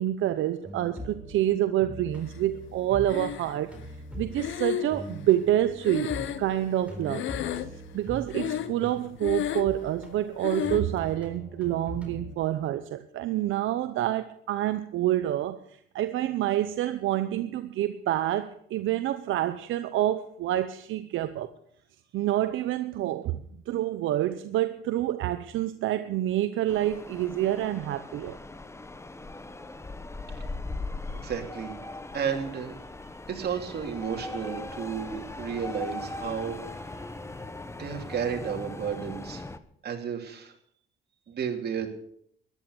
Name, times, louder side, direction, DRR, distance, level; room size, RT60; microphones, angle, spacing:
voice 1, 0.0-3.7 4.2-7.3 7.9-15.6 15.9-21.5 22.1-28.4, right 13 dB, 80° right, 0.7 m, -27 dB
sound 1, 0.6-12.3, equal, 5° right, 4.1 m, -42 dB
Breathing, 3.1-3.8 4.4-6.8 7.1-7.9 8.3-8.9 9.2-9.8 10.4-10.9, left 11 dB, 75° left, 0.9 m, -32 dB
sound 2, 26.7-39.6, left 2 dB, 15° left, 1.0 m, -39 dB
voice 2, 31.2-31.8 32.1-32.7 33.3-37.1 37.8-39.4 39.8-40.5 41.3-41.9, right 7 dB, 55° right, 2.9 m, -32 dB
14.0 x 11.0 x 6.8 m
cardioid pair, 90°, 20 cm